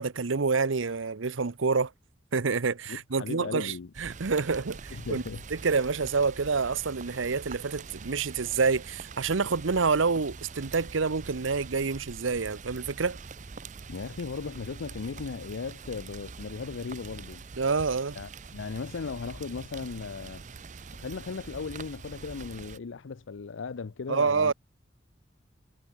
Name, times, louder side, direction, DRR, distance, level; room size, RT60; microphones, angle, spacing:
voice 1, 0.0-1.9 2.3-5.2 5.5-13.2 17.6-18.2 24.1-24.5, right 4 dB, 90° right, 0.8 m, -27 dB
voice 2, 2.9-3.9 4.9-5.4 13.9-17.4 18.2-20.4 21.0-24.5, left 4 dB, 80° left, 0.6 m, -37 dB
Rain, 3.9-22.8, right 4 dB, 40° right, 0.6 m, -44 dB
head